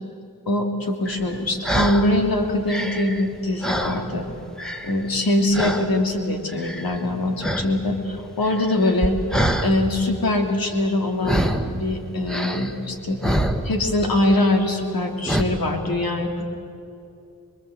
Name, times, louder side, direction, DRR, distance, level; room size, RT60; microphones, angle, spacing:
voice 1, 0.5-4.3 4.8-9.2 9.6-11.4 11.7-13.2 13.6-16.5, left 1 dB, 75° left, 3 dB, 2.9 m, -23 dB
sound 1, 1.0-2.1 2.5-4.3 4.6-5.2 5.5-5.9 6.5-7.1 7.4-7.7 8.0-9.7 11.2-11.8 12.3-14.0 14.3-14.6 15.3-15.4, equal, ahead, 1.7 m, -26 dB
26.0 x 22.0 x 8.0 m, 2.6 s
cardioid pair, 65°, 36 cm